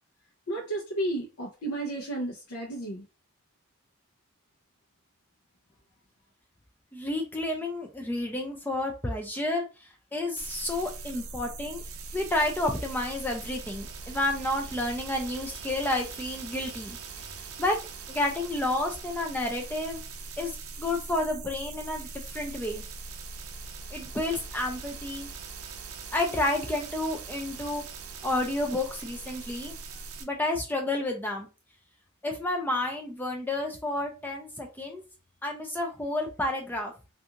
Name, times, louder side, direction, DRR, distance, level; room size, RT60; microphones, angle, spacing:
voice 1, 0.5-3.0, right 1 dB, 75° left, -2 dB, 0.6 m, -32 dB
voice 2, 6.9-11.8 12.1-17.8 18.1-20.0 20.4-22.8 23.9-25.3 26.1-27.8 28.2-29.7 30.2-31.5 32.2-35.0 35.4-36.9, left 1 dB, 10° left, 2 dB, 0.3 m, -30 dB
sound 1, 10.4-30.2, right 4 dB, 75° right, 0.5 m, -41 dB
2.5 x 2.4 x 2.7 m, 0.30 s
head